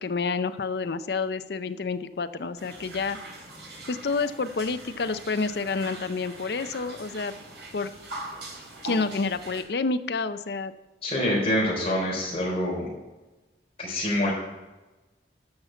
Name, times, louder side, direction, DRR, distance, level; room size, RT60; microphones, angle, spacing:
voice 1, 0.0-3.2 3.9-7.3 7.7-7.9 8.8-10.7, left 4 dB, 65° left, 12 dB, 0.5 m, -29 dB
sound 1, 2.6-9.6, right 1 dB, 80° right, 3.7 m, -42 dB
voice 2, 11.0-12.9 13.8-14.3, left 1 dB, 35° left, -3 dB, 3.8 m, -26 dB
12.0 x 5.7 x 6.9 m, 1.1 s
head